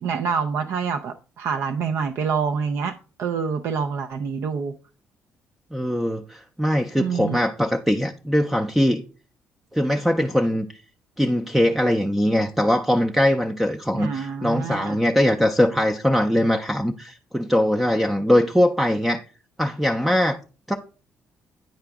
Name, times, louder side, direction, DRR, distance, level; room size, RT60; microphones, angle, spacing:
voice 1, 0.0-4.7 7.0-7.4 13.9-15.0, right 6 dB, 65° right, 0.4 m, -27 dB
voice 2, 5.7-9.0 9.7-10.7 11.2-19.2 19.6-20.4 20.7-20.8, equal, 5° right, 0.4 m, -21 dB
9.0 x 4.8 x 3.5 m
cardioid pair, 125°, 5 cm